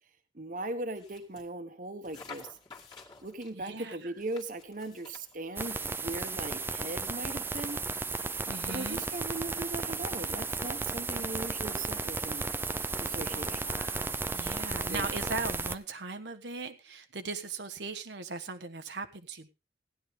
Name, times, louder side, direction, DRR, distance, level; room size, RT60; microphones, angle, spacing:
voice 1, 0.3-2.5 3.2-7.8 8.7-12.4 13.0-13.6 14.9-15.1, right 2 dB, 50° right, 1.2 m, -39 dB
sound 1, 1.0-1.5 2.0-3.5 4.2-6.1, left 5 dB, 25° left, 2.1 m, -51 dB
voice 2, 3.5-4.1 8.4-9.0 13.3-19.5, right 3 dB, 90° right, 1.2 m, -39 dB
sound 2, 5.6-15.8, right 3 dB, 15° right, 0.5 m, -34 dB
15.5 x 10.5 x 3.6 m
head